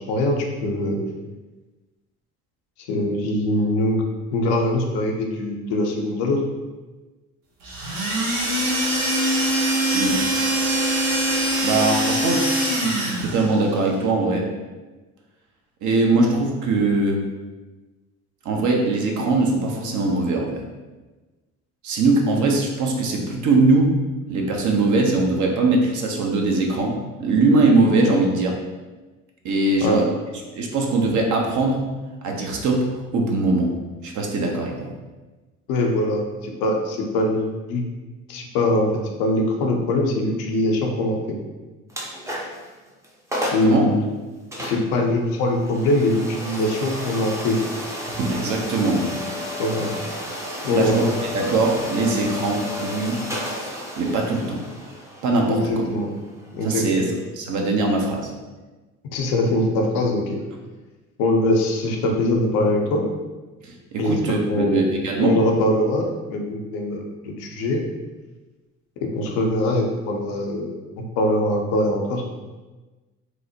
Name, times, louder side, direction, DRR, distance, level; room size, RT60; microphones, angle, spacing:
voice 1, 0.1-1.0 2.9-4.0 4.3-6.4 29.8-30.0 35.7-37.8 38.3-38.9 39.2-41.4 43.5-43.9 44.6-47.6 49.6-49.9 50.6-51.0 55.5-56.1 56.5-57.1 59.1-60.4 61.2-63.0 64.0-64.8 65.2-67.8 69.0-70.7 71.0-72.2, left 1 dB, 65° left, 1 dB, 0.6 m, -22 dB
sound 1, 7.6-13.5, right 1 dB, 90° right, 0.7 m, -22 dB
voice 2, 11.6-14.5 15.8-17.2 18.4-20.6 21.8-23.9 24.3-28.6 29.4-30.1 30.6-31.8 32.2-32.9 33.1-33.7 34.0-34.9 43.6-43.9 48.1-49.1 50.7-51.0 51.3-53.3 54.0-54.6 55.2-55.9 56.6-58.3 63.6-65.3, right 3 dB, 50° right, 1 dB, 0.6 m, -21 dB
sound 2, 41.9-42.7 43.0-43.1 43.3-43.8 44.5-57.2, left 1 dB, 10° right, 0.5 m, -32 dB
3.0 x 2.0 x 2.7 m, 1.2 s
hypercardioid pair, 55°, 40 cm